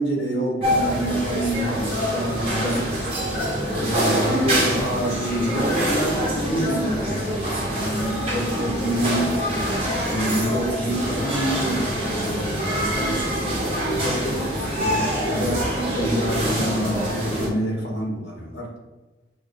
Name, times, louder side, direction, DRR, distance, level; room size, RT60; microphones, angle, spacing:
voice 1, 0.0-2.9 3.7-9.3 10.0-13.2 13.8-14.5 14.7-15.6 15.9-18.7, right 1 dB, 60° left, -2 dB, 1.1 m, -27 dB
sound 1, 0.6-17.5, equal, 30° right, 1.0 m, -25 dB
5.6 x 2.4 x 2.6 m, 1.1 s
head